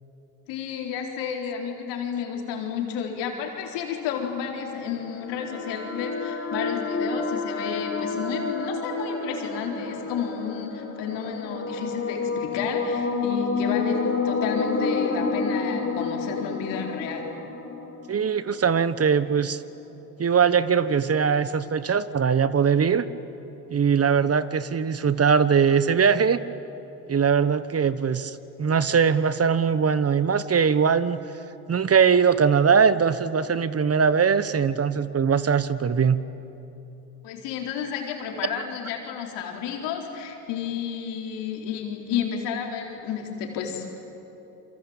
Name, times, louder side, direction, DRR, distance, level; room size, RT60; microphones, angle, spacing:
voice 1, 0.5-17.3 37.2-43.9, left 7 dB, 80° left, 2 dB, 4.2 m, -31 dB
sound 1, 4.7-18.8, left 4 dB, 30° left, 6.5 m, -29 dB
voice 2, 18.1-19.6 20.2-23.1 23.7-26.4 27.1-31.2 31.7-36.2, right 6 dB, 35° right, 14 dB, 1.2 m, -21 dB
27.0 x 24.5 x 8.9 m, 3.0 s
supercardioid pair, 70°, 42 cm